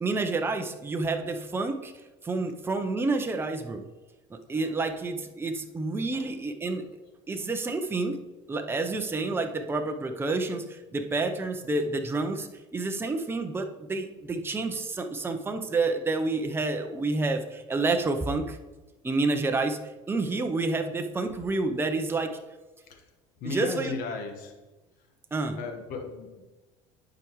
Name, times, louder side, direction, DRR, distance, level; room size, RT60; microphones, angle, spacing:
voice 1, 0.0-1.9 2.2-3.8 4.3-6.8 7.3-8.2 8.5-18.6 19.0-19.8 20.1-22.3 23.5-23.9 25.3-25.6, right 3 dB, 15° right, 5 dB, 0.7 m, -29 dB
voice 2, 4.5-4.8 6.1-6.3 6.9-7.0 7.3-7.5 15.2-15.5 22.8-23.1 23.4-24.6 25.0-25.1 25.6-26.5, left 4 dB, 65° left, 3 dB, 1.4 m, -37 dB
11.0 x 4.8 x 3.1 m, 1.1 s
supercardioid pair, 95°, 16 cm